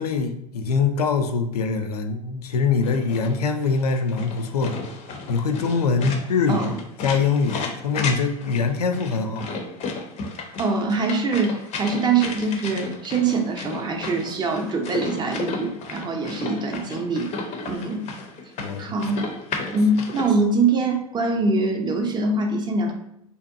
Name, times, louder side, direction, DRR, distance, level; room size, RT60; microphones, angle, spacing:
voice 1, 0.0-4.8 5.3-6.7 7.0-9.5 18.6-18.9, left 5 dB, 85° left, 6 dB, 0.4 m, -23 dB
sound 1, 2.8-20.3, left 3 dB, 35° left, 0.5 m, -34 dB
voice 2, 10.6-17.3 17.7-18.1 18.8-19.2 19.7-22.9, right 3 dB, 25° right, 4 dB, 0.5 m, -23 dB
2.6 x 2.1 x 2.6 m, 0.80 s
hypercardioid pair, 85°, 19 cm